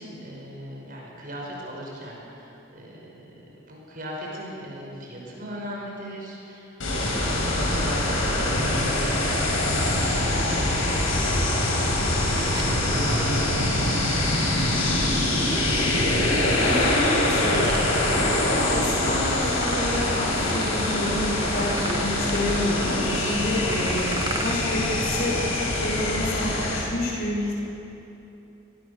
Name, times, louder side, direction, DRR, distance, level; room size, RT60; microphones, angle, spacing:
voice 1, 0.0-15.1, equal, 45° right, -2 dB, 5.8 m, -39 dB
sound 1, 6.8-26.8, left 1 dB, 80° left, 6.6 m, -24 dB
sound 2, 12.5-13.6 15.4-16.2 17.0-24.5, right 3 dB, 20° right, 1.4 m, -38 dB
Electric guitar / Strum, 12.9-18.6, right 2 dB, 65° right, 6.4 m, -39 dB
voice 2, 16.6-27.5, left 1 dB, 50° left, -4 dB, 7.0 m, -28 dB
28.0 x 20.5 x 7.1 m, 3.0 s
head